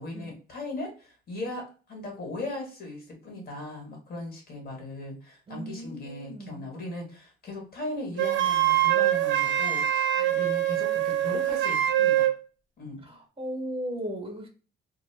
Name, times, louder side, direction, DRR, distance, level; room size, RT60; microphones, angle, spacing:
voice 1, 0.0-12.3 12.8-13.0, left 2 dB, 50° left, 0 dB, 1.4 m, -38 dB
voice 2, 5.5-6.7 13.0-14.5, equal, 30° right, 2 dB, 0.9 m, -36 dB
Wind instrument woodwind instrument, 8.2-12.4, right 12 dB, 70° right, 0.4 m, -24 dB
2.2 x 2.0 x 3.3 m, 0.36 s
cardioid pair, 90°, 20 cm